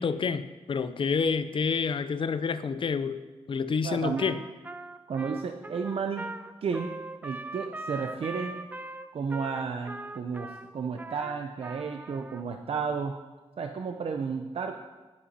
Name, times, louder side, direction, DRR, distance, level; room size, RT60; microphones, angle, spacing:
voice 1, 0.0-3.2 3.5-4.4, left 5 dB, 50° left, 12 dB, 0.5 m, -28 dB
voice 2, 3.8-4.3 5.1-6.3 6.6-6.9 7.2-8.6 9.1-13.1 13.6-14.7, right 5 dB, 60° right, 5 dB, 0.6 m, -32 dB
Trumpet, 4.2-12.4, right 2 dB, 15° right, 0.4 m, -41 dB
11.0 x 8.7 x 4.2 m, 1.2 s
wide cardioid pair, 100°, 11 cm